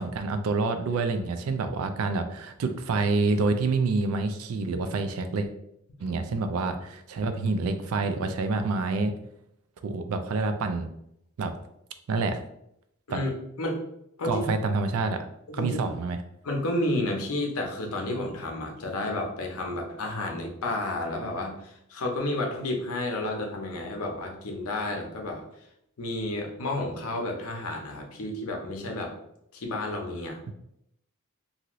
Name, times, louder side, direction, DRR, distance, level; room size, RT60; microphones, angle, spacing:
voice 1, 0.0-5.5 6.0-9.1 9.8-10.9 11.4-11.5 12.1-12.4 13.1-13.2 14.2-15.3 15.5-16.2 30.5-30.6, right 3 dB, 70° right, 8 dB, 0.4 m, -27 dB
voice 2, 16.4-25.4 26.0-29.1 29.5-30.4, left 1 dB, 75° left, 2 dB, 0.6 m, -31 dB
2.7 x 2.5 x 3.0 m, 0.77 s
head